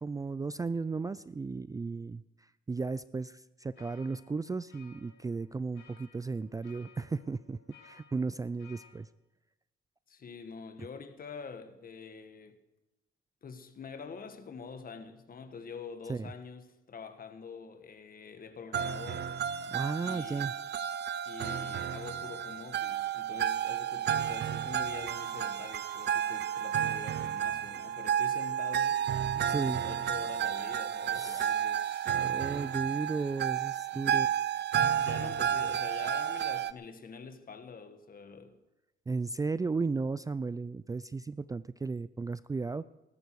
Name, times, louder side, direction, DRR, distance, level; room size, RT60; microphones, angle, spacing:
voice 1, 0.0-2.2 2.7-9.1 16.1-16.3 19.7-20.5 29.4-29.8 31.1-31.6 32.1-34.3 34.8-34.9 39.1-42.9, right 4 dB, 15° right, 0.4 m, -35 dB
sound 1, 3.7-8.9, left 6 dB, 80° left, 4.8 m, -59 dB
voice 2, 10.1-12.6 13.4-19.3 20.0-20.5 21.3-29.0 29.7-32.1 33.9-34.3 35.0-38.6, left 5 dB, 45° left, 1.6 m, -46 dB
sound 2, 18.7-36.7, right 9 dB, 60° right, 0.7 m, -32 dB
20.0 x 12.0 x 4.8 m
cardioid pair, 90°, 20 cm